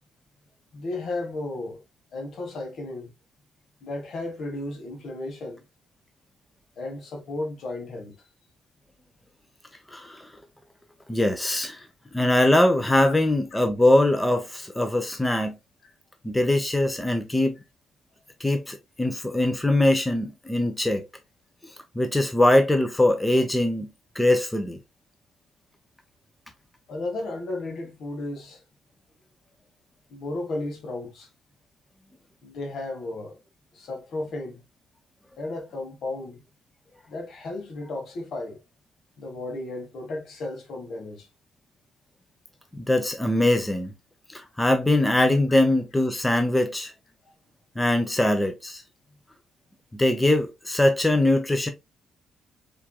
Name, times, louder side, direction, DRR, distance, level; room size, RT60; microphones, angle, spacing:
voice 1, 0.7-1.8 2.1-3.1 3.8-5.6 6.8-8.2 12.9-13.2 26.9-28.6 30.1-31.3 32.4-33.4 33.7-34.6 35.4-36.4 37.1-38.6 39.2-41.3, left 2 dB, 65° left, 1.6 m, -34 dB
voice 2, 9.9-10.3 11.1-11.8 12.1-15.6 16.2-17.5 18.4-21.0 21.9-23.9 24.1-24.8 42.7-43.9 44.3-46.9 47.8-48.8 49.9-51.7, left 1 dB, 10° left, 0.8 m, -22 dB
4.5 x 3.7 x 2.2 m
cardioid pair, 90°, 0 cm